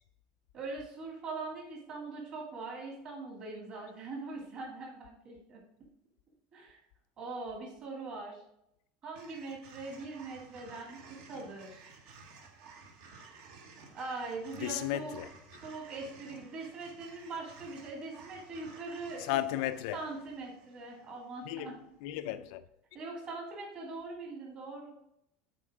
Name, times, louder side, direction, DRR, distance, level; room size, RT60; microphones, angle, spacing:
voice 1, 0.5-5.6 6.5-6.8 7.2-8.4 9.0-11.8 13.9-15.1 15.6-19.3 19.9-21.8 22.9-24.9, right 3 dB, 35° right, 2.2 m, -42 dB
sound 1, 9.1-21.5, right 4 dB, 55° right, 1.2 m, -54 dB
voice 2, 14.6-15.3 19.2-20.0 21.5-21.7 22.0-22.6, left 13 dB, 55° left, 0.4 m, -34 dB
7.7 x 4.1 x 4.8 m
cardioid pair, 180°, 4 cm